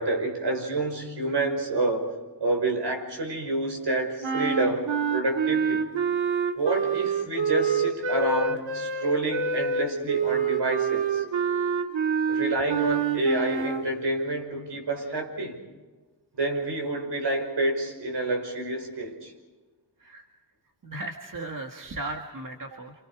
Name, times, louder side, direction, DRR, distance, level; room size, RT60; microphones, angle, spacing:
voice 1, 0.0-2.1 2.4-5.9 6.6-11.2 12.3-15.6 16.3-19.3, right 2 dB, 65° right, 3 dB, 5.7 m, -28 dB
sound 1, 4.2-13.9, right 6 dB, 90° right, 1.7 m, -27 dB
voice 2, 20.8-22.9, right 2 dB, 45° right, 2 dB, 2.0 m, -36 dB
29.5 x 28.0 x 5.0 m, 1.2 s
wide cardioid pair, 110°, 45 cm